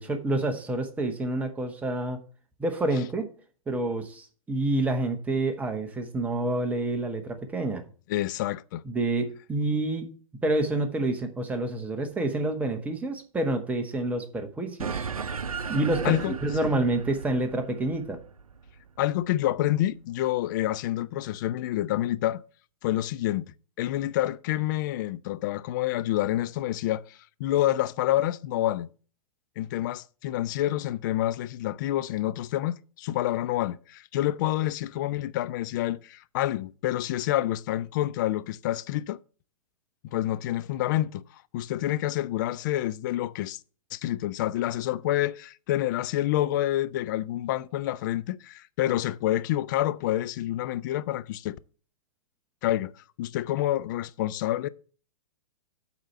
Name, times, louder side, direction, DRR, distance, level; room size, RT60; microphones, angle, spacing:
voice 1, 0.0-2.2 2.6-3.3 3.7-7.9 8.8-10.1 10.4-15.1 15.7-18.2, right 2 dB, 10° right, 1.0 m, -28 dB
voice 2, 8.1-8.8 16.0-16.3 19.0-22.4 22.8-28.9 29.6-39.2 40.1-41.2 41.5-43.6 43.9-51.6 52.6-52.9 53.2-54.7, left 14 dB, 35° left, 0.4 m, -28 dB
sound 1, 14.8-19.6, right 5 dB, 80° right, 0.5 m, -36 dB
7.9 x 4.3 x 6.8 m
figure-of-eight pair, 115°, 18 cm